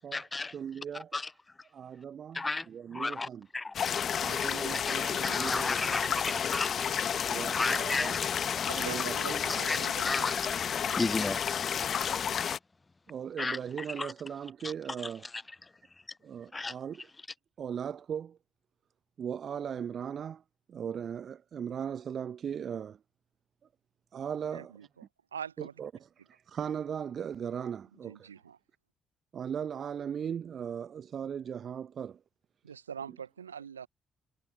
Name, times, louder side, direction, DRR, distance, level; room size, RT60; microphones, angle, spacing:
voice 1, 0.0-0.5 0.9-1.3 2.3-4.0 4.9-5.0 5.2-8.2 9.6-10.5 11.0-11.4 13.4-14.1 14.6-14.7 15.0-15.7 16.5-16.7, left 3 dB, 25° left, 0.5 m, -34 dB
voice 2, 0.5-1.1 1.7-3.5 4.2-6.4 7.3-8.2 8.7-9.5 13.1-15.2 16.2-17.1 17.6-18.4 19.2-20.4 20.7-23.0 24.1-24.7 25.6-25.9 26.3-28.3 29.3-32.2, right 8 dB, 50° right, 0.9 m, -38 dB
sound 1, 3.7-12.6, left 8 dB, 45° left, 1.2 m, -31 dB
voice 3, 8.7-10.1 10.9-11.0 24.5-25.1 25.3-25.7 27.9-28.6 32.6-33.9, right 7 dB, 80° right, 1.0 m, -43 dB
figure-of-eight pair, 45°, 0 cm